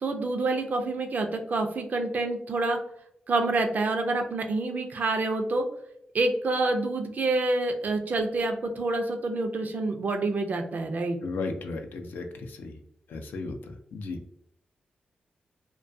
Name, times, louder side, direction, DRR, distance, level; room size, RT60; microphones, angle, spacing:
voice 1, 0.0-2.8 3.3-5.7 6.1-11.2, right 2 dB, 60° right, 5 dB, 0.4 m, -27 dB
voice 2, 11.2-12.8 13.1-14.2, left 3 dB, 80° left, 5 dB, 0.4 m, -35 dB
2.2 x 2.2 x 2.5 m, 0.74 s
cardioid pair, 60°, 3 cm